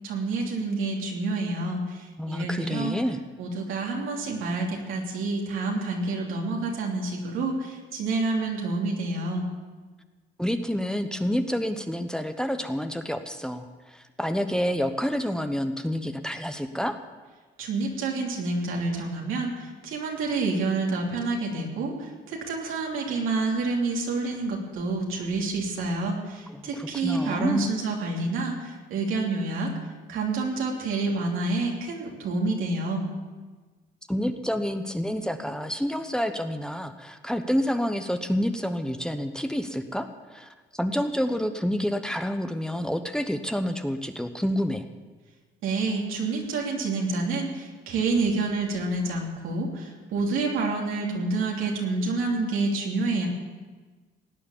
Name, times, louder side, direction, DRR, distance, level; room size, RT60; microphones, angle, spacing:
voice 1, 0.0-3.0 3.4-9.4 17.6-29.7 30.1-33.0 45.6-53.3, right 3 dB, 90° right, -1 dB, 3.1 m, -28 dB
voice 2, 2.2-3.2 10.4-17.0 26.5-27.7 34.1-44.8, equal, 5° left, 8 dB, 1.0 m, -28 dB
17.5 x 9.5 x 7.3 m, 1.4 s
cardioid pair, 90°, 20 cm